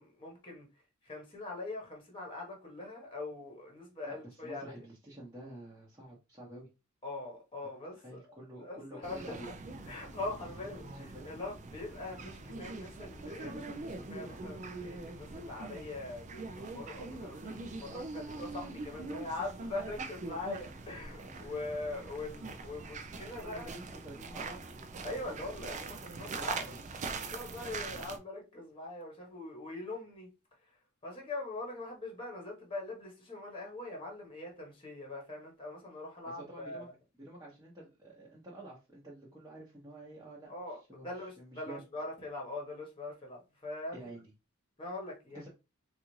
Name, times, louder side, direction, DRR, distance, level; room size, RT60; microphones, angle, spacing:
voice 1, 0.0-4.8 7.0-9.5 9.9-23.7 25.0-26.7 27.1-36.9 40.5-44.1 44.8-45.5, left 2 dB, 25° left, 1.1 m, -42 dB
voice 2, 4.4-6.7 8.0-9.5 10.9-11.3 21.3-21.6 23.4-24.6 26.3-26.8 36.4-36.9 37.2-40.5 40.9-41.1 41.4-41.8 43.9-44.2 45.3-45.5, right 1 dB, 15° right, 0.9 m, -49 dB
sound 1, 9.0-28.2, right 3 dB, 35° right, 0.4 m, -43 dB
4.0 x 2.4 x 3.1 m
head